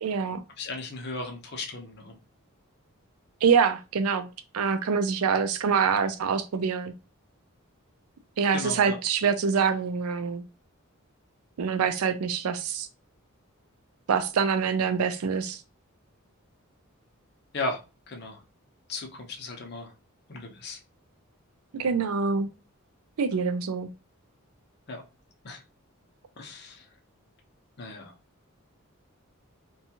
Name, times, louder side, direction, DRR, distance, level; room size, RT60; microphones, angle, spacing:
voice 1, 0.0-0.4 3.4-4.3 4.5-6.9 8.4-10.4 11.6-12.9 14.1-15.6 21.7-22.5 23.2-23.9, right 6 dB, 85° right, 0.4 m, -25 dB
voice 2, 0.6-2.2 8.5-9.0 17.5-17.8 18.1-18.4 18.9-19.9 20.3-20.8 24.9-25.1 25.4-25.6 26.4-26.8 27.8-28.1, left 2 dB, 50° left, 0.6 m, -36 dB
2.7 x 2.3 x 2.8 m
head